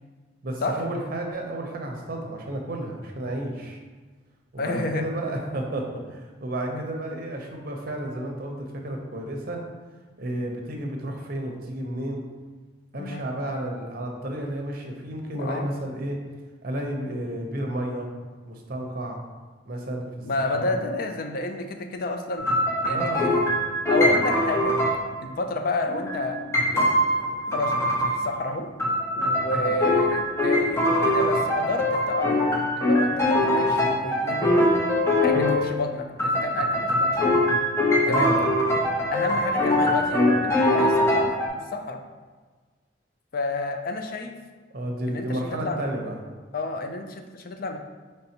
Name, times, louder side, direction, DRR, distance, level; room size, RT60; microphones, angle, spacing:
voice 1, 0.4-3.8 4.5-9.6 10.2-12.2 12.9-16.2 16.6-18.1 18.5-19.2 19.7-20.2 20.5-20.7 22.9-23.4 29.6-29.8 38.1-38.4 40.1-40.4 44.7-46.2, right 1 dB, 55° right, 2 dB, 0.7 m, -32 dB
voice 2, 4.6-5.1 6.7-6.8 13.0-13.3 15.3-15.7 20.2-22.5 22.8-23.4 23.9-24.8 25.2-26.4 26.7-28.7 29.2-34.6 35.2-37.4 38.0-38.3 39.1-42.0 43.3-44.3 45.1-45.9 46.5-47.8, left 2 dB, 50° left, 6 dB, 0.4 m, -30 dB
sound 1, 22.4-25.0 25.9-28.4 28.8-35.6 36.2-41.5, left 1 dB, 15° left, 0.7 m, -22 dB
5.4 x 3.4 x 2.8 m, 1.4 s
head